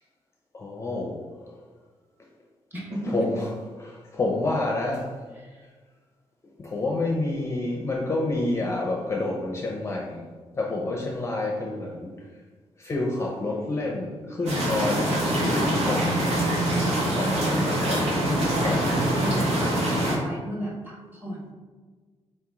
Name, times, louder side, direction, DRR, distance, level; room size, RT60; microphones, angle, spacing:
voice 1, 0.5-1.2 3.1-3.4 3.9-5.1 6.6-10.2 10.5-12.1 12.8-16.3 17.1-18.0 18.6-19.2, left 2 dB, 25° left, -1 dB, 0.5 m, -28 dB
voice 2, 2.7-3.3 5.3-5.7 15.5-15.8 17.8-18.2 19.2-19.5 20.0-21.5, right 1 dB, 15° right, -3 dB, 1.0 m, -34 dB
sound 1, 14.5-20.2, right 1 dB, 90° right, 1.2 m, -24 dB
4.4 x 2.9 x 3.5 m, 1.4 s
wide cardioid pair, 155°, 11 cm